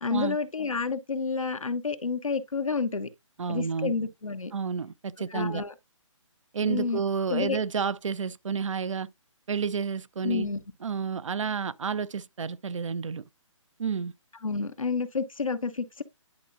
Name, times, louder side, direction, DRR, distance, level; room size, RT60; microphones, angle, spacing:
voice 1, 0.0-3.1 3.5-4.5 5.3-5.7 6.6-7.0 7.3-7.6 10.2-10.6 14.4-16.0, left 4 dB, 85° left, 1.0 m, -29 dB
voice 2, 3.4-3.9 4.5-5.6 6.5-9.1 9.5-10.5 10.8-13.2 13.8-14.1, right 6 dB, 70° right, 0.6 m, -30 dB
10.5 x 4.5 x 2.6 m
figure-of-eight pair, 140°, 17 cm